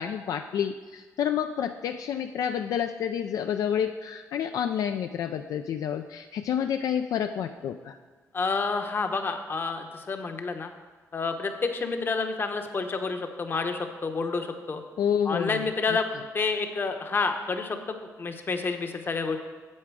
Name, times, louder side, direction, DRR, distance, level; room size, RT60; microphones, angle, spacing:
voice 1, 0.0-8.0 15.0-16.0, left 8 dB, 75° left, 7 dB, 0.4 m, -29 dB
voice 2, 8.3-10.7 11.1-14.8 15.3-16.1 16.3-19.4, left 4 dB, 35° left, 6 dB, 0.9 m, -29 dB
8.7 x 7.6 x 4.8 m, 1.3 s
cardioid pair, 100°, 6 cm